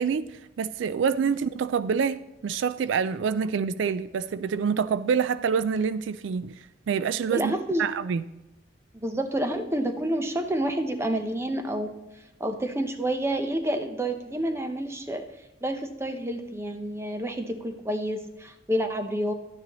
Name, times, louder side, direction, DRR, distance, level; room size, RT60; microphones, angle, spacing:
voice 1, 0.0-7.5 7.8-8.2, right 6 dB, 80° right, 15 dB, 0.3 m, -27 dB
voice 2, 7.3-7.9 8.9-12.0 12.4-15.3 15.6-19.3, right 1 dB, 15° right, 7 dB, 0.7 m, -29 dB
11.5 x 9.4 x 3.0 m, 0.98 s
head